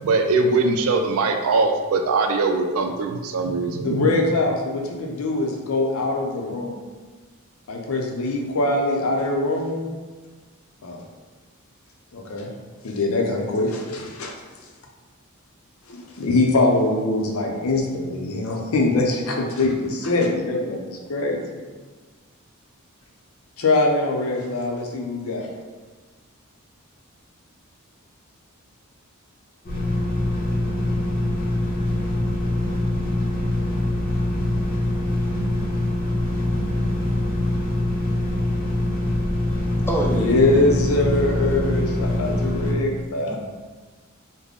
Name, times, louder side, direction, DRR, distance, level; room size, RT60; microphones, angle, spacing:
voice 1, 0.0-4.1, right 3 dB, 75° right, 5 dB, 0.4 m, -21 dB
voice 2, 3.8-6.8 7.7-9.9 10.8-11.0 12.1-12.5 12.8-14.3 15.9-21.4 23.6-25.5 40.1-43.4, left 2 dB, 80° left, 1 dB, 0.6 m, -23 dB
sound 1, 29.6-42.7, left 1 dB, 45° left, 0.8 m, -24 dB
voice 3, 39.8-40.6 41.5-41.6 43.3-43.4, right 1 dB, 10° left, -2 dB, 0.4 m, -27 dB
3.5 x 2.1 x 3.6 m, 1.4 s
head